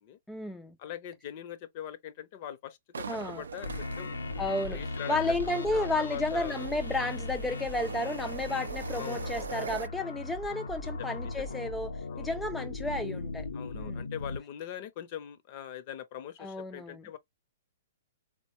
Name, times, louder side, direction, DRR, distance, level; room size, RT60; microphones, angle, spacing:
voice 1, 0.3-0.8 3.1-3.4 4.4-4.8 5.1-11.9 12.2-13.5 13.7-14.0 16.4-17.0, left 2 dB, 5° left, 0.3 m, -32 dB
voice 2, 0.8-4.2 4.7-5.4 5.7-6.6 8.9-9.5 10.0-10.1 11.0-11.6 12.1-12.4 13.5-17.2, left 10 dB, 45° left, 0.7 m, -42 dB
sound 1, 2.9-9.9, right 6 dB, 80° right, 0.3 m, -42 dB
sound 2, 3.6-14.4, left 3 dB, 80° left, 0.8 m, -38 dB
4.0 x 2.2 x 2.9 m
hypercardioid pair, 125°, 0 cm